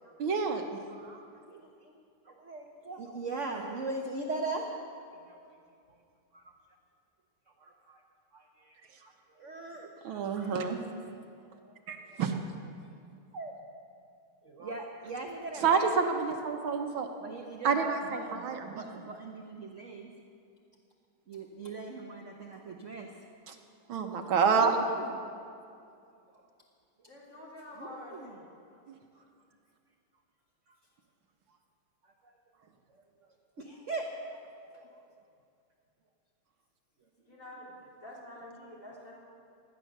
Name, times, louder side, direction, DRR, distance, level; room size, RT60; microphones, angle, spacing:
voice 1, 0.2-0.8 10.0-10.8 11.9-12.3 15.6-17.1 17.6-18.8 23.5-23.6 23.9-24.9 28.9-29.0, right 5 dB, 75° right, 4 dB, 1.8 m, -28 dB
voice 2, 0.9-2.0 2.2-4.7 5.2-5.4 5.9-6.0 6.3-6.4 7.5-8.0 8.3-11.1 11.5-12.2 13.3-13.6 14.4-15.9 17.2-20.1 21.3-23.1 24.5-25.3 26.3-26.5 27.0-27.1 27.4-27.5 27.7-28.4 28.7-28.8 29.1-29.3 31.5-31.6 32.0-32.3 32.9-35.2 37.3-37.4, right 3 dB, 45° right, 1 dB, 1.1 m, -41 dB
voice 3, 27.1-28.4 37.3-37.7 38.0-39.1, left 1 dB, 35° left, -6 dB, 4.2 m, -47 dB
16.5 x 12.5 x 6.6 m, 2.4 s
omnidirectional pair, 2.3 m